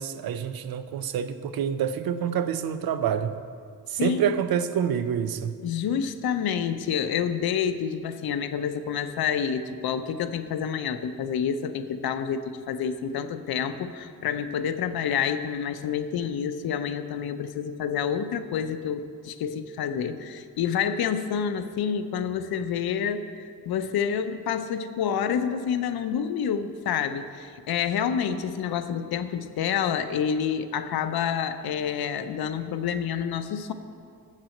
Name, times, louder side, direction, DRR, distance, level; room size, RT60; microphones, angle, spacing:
voice 1, 0.0-3.3 3.9-5.5, right 8 dB, 75° right, 12 dB, 0.6 m, -27 dB
voice 2, 4.0-4.3 5.6-12.4 12.7-33.7, left 7 dB, 85° left, 10 dB, 0.7 m, -28 dB
7.5 x 7.3 x 7.7 m, 2.2 s
wide cardioid pair, 165°, 36 cm